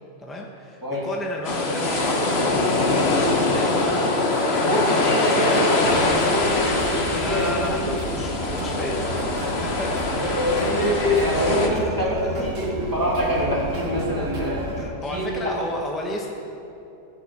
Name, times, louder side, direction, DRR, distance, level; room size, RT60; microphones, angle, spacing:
voice 1, 0.2-2.6 3.1-5.0 7.1-9.1 9.4-10.4 10.8-10.9 11.7-11.9 12.2-12.5 14.8-16.3, left 1 dB, ahead, -1 dB, 1.1 m, -33 dB
sound 1, 1.4-11.7, left 2 dB, 55° left, 1.4 m, -23 dB
voice 2, 4.5-7.9 8.8-9.1 10.2-14.7 15.1-15.3, equal, 15° right, -5 dB, 2.7 m, -24 dB
sound 2, 5.1-14.8, right 1 dB, 75° right, 1.8 m, -33 dB
13.5 x 7.0 x 7.8 m, 2.8 s
omnidirectional pair, 1.4 m